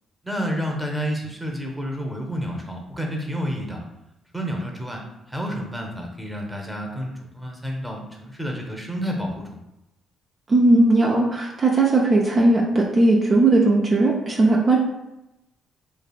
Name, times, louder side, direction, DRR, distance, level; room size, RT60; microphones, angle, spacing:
voice 1, 0.2-3.8 4.3-5.0 5.3-9.6, equal, 5° right, 0 dB, 0.8 m, -30 dB
voice 2, 10.5-14.8, right 2 dB, 40° right, -1 dB, 0.4 m, -18 dB
3.2 x 2.3 x 2.4 m, 0.91 s
supercardioid pair, 60°, 0 cm